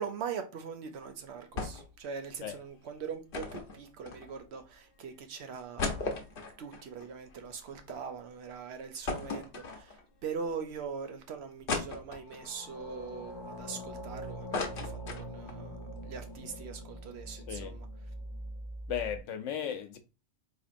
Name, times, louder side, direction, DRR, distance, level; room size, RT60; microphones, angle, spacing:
voice 1, 0.0-17.9, right 6 dB, 65° right, 0.9 m, -42 dB
sound 1, 1.6-2.0 2.3-2.4 3.3-4.6 5.1-5.2 5.5-8.0 8.4-8.5 9.1-10.2 10.7-10.8 11.7-12.5 13.1-14.0 14.3-15.6 16.0-16.1 16.3-16.6, left 3 dB, 55° left, 0.9 m, -37 dB
sound 2, 6.0-7.1 12.2-19.2, equal, 30° left, 0.6 m, -44 dB
voice 2, 18.9-20.0, left 8 dB, 85° left, 1.0 m, -35 dB
4.2 x 2.8 x 2.5 m
omnidirectional pair, 1.2 m